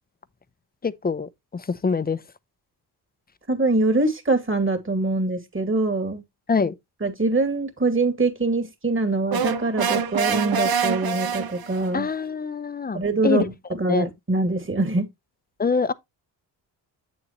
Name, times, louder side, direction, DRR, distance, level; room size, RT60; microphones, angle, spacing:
voice 1, 0.8-2.2 6.5-6.7 11.9-13.5 13.9-14.1 15.6-15.9, left 5 dB, 20° left, 0.7 m, -24 dB
voice 2, 3.5-6.2 7.0-12.1 12.9-15.1, right 3 dB, 30° right, 2.5 m, -24 dB
sound 1, 9.3-11.9, right 6 dB, 55° right, 1.2 m, -25 dB
8.6 x 7.0 x 3.1 m
cardioid pair, 70°, 44 cm